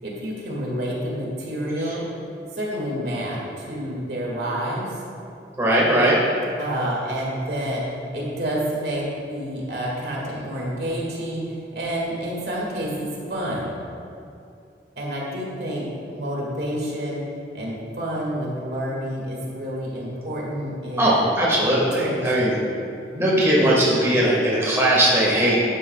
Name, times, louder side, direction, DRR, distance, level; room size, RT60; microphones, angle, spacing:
voice 1, 0.0-2.0 2.5-5.0 6.6-7.8 8.1-13.7 15.0-15.9 16.1-17.3 17.5-21.3 21.6-22.4 23.1-23.4, equal, 60° right, -4 dB, 2.0 m, -29 dB
voice 2, 5.6-6.2 21.0-22.6 23.2-25.6, right 1 dB, 15° right, -6 dB, 1.6 m, -19 dB
11.0 x 10.5 x 2.3 m, 2.5 s
head